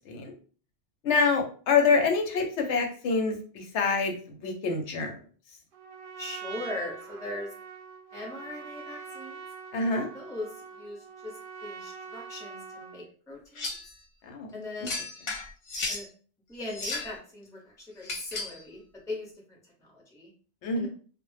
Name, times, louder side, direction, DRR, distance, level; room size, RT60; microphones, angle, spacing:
voice 1, 1.0-5.2 9.7-10.1 14.3-14.5 20.6-20.9, left 4 dB, 75° left, 2 dB, 0.9 m, -26 dB
Trumpet, 5.7-13.1, right 6 dB, 60° right, 0.6 m, -44 dB
voice 2, 6.2-7.5 8.1-9.4 9.9-11.3 11.6-13.7 14.5-15.0 15.9-16.1 16.5-20.3 20.7-20.9, left 2 dB, 5° left, -2 dB, 0.5 m, -40 dB
sound 1, 13.6-13.9 14.8-16.1 16.6-17.2 18.0-18.6, left 3 dB, 50° left, 0.7 m, -34 dB
2.0 x 2.0 x 3.1 m, 0.42 s
omnidirectional pair, 1.2 m